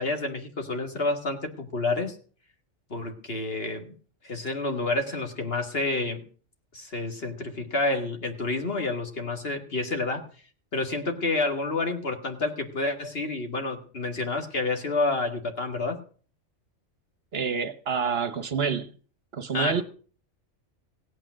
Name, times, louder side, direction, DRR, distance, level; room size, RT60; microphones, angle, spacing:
voice 1, 0.0-2.2 2.9-3.9 4.2-6.2 6.7-10.3 10.7-16.0 19.5-19.8, left 2 dB, 55° left, 2.2 m, -29 dB
voice 2, 17.3-18.9 19.3-19.8, right 6 dB, 55° right, 1.2 m, -27 dB
17.0 x 8.9 x 6.2 m
omnidirectional pair, 1.2 m